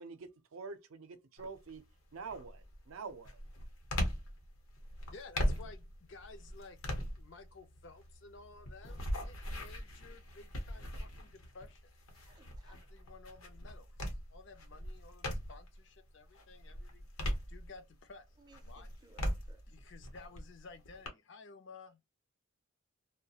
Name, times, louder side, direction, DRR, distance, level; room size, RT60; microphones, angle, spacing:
voice 1, 0.0-1.8 2.1-3.4, right 4 dB, 85° right, 0.5 m, -46 dB
sound 1, 1.4-1.8 2.3-15.8 16.2-18.1 18.5-21.1, equal, 85° left, 0.9 m, -40 dB
voice 2, 5.1-6.8 7.1-11.8 12.6-17.1 17.5-18.3 18.6-18.9 19.7-22.0, left 4 dB, 60° left, 0.5 m, -54 dB
voice 3, 12.2-12.8 18.4-19.6, right 4 dB, 20° right, 0.4 m, -63 dB
2.3 x 2.1 x 2.7 m
head